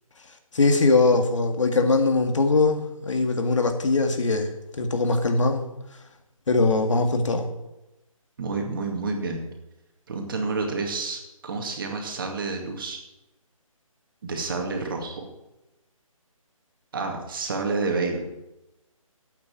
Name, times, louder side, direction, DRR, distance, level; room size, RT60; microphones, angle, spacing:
voice 1, 0.5-5.6 6.5-7.5, left 3 dB, 60° left, 5 dB, 2.0 m, -21 dB
voice 2, 8.4-9.4 10.1-13.0 14.2-15.2 16.9-18.2, right 3 dB, 40° right, 2 dB, 2.3 m, -29 dB
8.5 x 8.0 x 9.0 m, 0.95 s
figure-of-eight pair, 160°, 18 cm